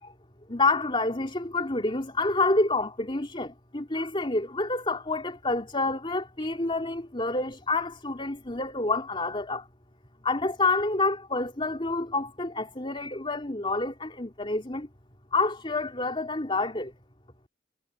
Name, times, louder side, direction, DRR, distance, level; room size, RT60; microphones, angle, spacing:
voice 1, 0.5-9.7 10.2-14.9 15.3-16.9, left 3 dB, 30° left, 3.5 m, -28 dB
head